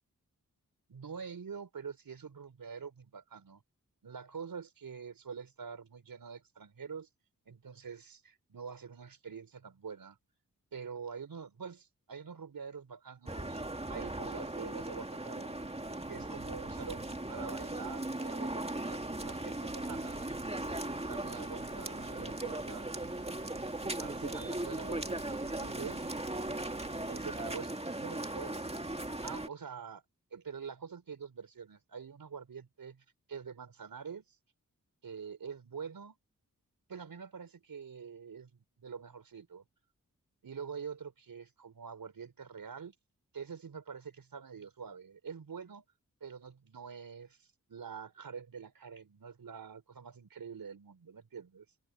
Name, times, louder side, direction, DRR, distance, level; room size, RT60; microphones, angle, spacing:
voice 1, 0.9-3.6 4.0-7.1 7.5-10.2 10.7-13.6 13.9-15.6 16.1-20.3 21.1-22.9 23.8-26.0 27.1-28.7 29.2-30.0 30.3-34.4 35.0-36.2 36.9-39.6 40.4-42.9 43.3-45.8 46.2-51.7, right 6 dB, 80° right, 4.3 m, -46 dB
sound 1, 13.3-29.5, right 2 dB, 20° right, 2.1 m, -38 dB
Rain, 19.6-27.6, right 4 dB, 60° right, 2.3 m, -54 dB
open air
cardioid pair, 55°, 34 cm